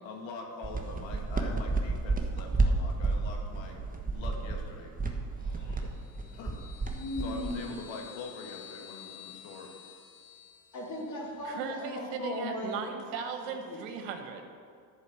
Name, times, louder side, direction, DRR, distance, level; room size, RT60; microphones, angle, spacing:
voice 1, 0.0-3.8 4.1-4.9 6.3-6.6 7.2-9.7, left 3 dB, 65° left, 1 dB, 2.1 m, -43 dB
sound 1, 0.6-7.8, right 3 dB, 15° right, 1.3 m, -31 dB
voice 2, 5.4-5.9 6.9-7.7 10.7-12.8 13.4-13.8, left 1 dB, 35° left, -2 dB, 3.0 m, -38 dB
sound 2, 5.8-11.3, left 10 dB, 80° left, 2.1 m, -51 dB
voice 3, 11.4-14.5, right 6 dB, 80° right, 5 dB, 1.5 m, -37 dB
11.0 x 5.1 x 8.0 m, 2.2 s
supercardioid pair, 90°, 50 cm